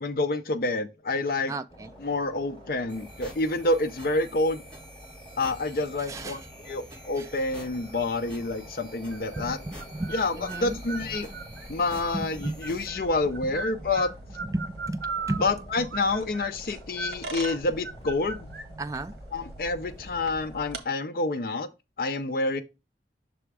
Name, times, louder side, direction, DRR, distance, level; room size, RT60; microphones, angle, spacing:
voice 1, 0.0-1.5 2.0-4.6 5.4-9.6 10.1-11.3 11.7-14.1 15.4-18.5 19.3-21.7 22.0-22.6, left 2 dB, 55° left, 0.5 m, -28 dB
voice 2, 1.5-1.9 6.1-6.4 6.9-7.3 9.4-10.8 12.1-12.6 13.4-13.5 14.4-15.5 18.8-19.1, right 2 dB, 20° right, 0.3 m, -34 dB
sound 1, 1.7-20.8, equal, 30° left, 1.6 m, -49 dB
sound 2, 2.9-12.9, equal, 5° left, 2.9 m, -47 dB
sound 3, 9.1-20.8, right 3 dB, 80° right, 1.2 m, -40 dB
6.1 x 3.4 x 4.7 m
head